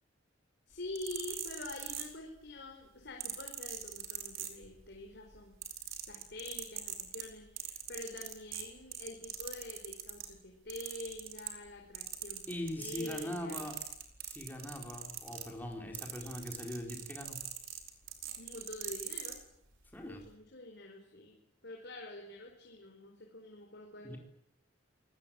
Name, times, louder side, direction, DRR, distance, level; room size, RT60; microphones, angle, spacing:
voice 1, 0.7-13.7 15.7-16.0 18.3-19.4 20.0-24.2, left 2 dB, 60° left, 1 dB, 4.7 m, -47 dB
sound 1, 0.8-2.5 3.2-4.9 5.3-10.3 10.7-11.7 11.9-19.4 20.1-20.3, right 11 dB, 85° right, 4.9 m, -42 dB
voice 2, 12.5-13.8 14.2-17.4 19.9-20.2 24.0-24.2, left 1 dB, 10° left, 1 dB, 4.4 m, -41 dB
28.0 x 19.0 x 9.0 m, 0.74 s
head